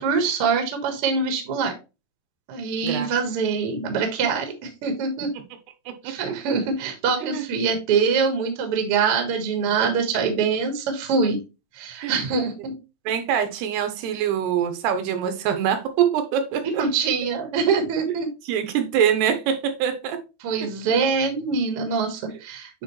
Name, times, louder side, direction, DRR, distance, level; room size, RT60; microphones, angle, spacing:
voice 1, 0.0-1.7 2.5-5.3 6.0-11.4 11.7-12.7 16.6-18.3 20.4-22.8, right 5 dB, 60° right, 1.5 m, -24 dB
voice 2, 13.1-16.8 18.4-20.2, right 8 dB, 80° right, 2.9 m, -24 dB
8.7 x 3.6 x 3.1 m
omnidirectional pair, 4.7 m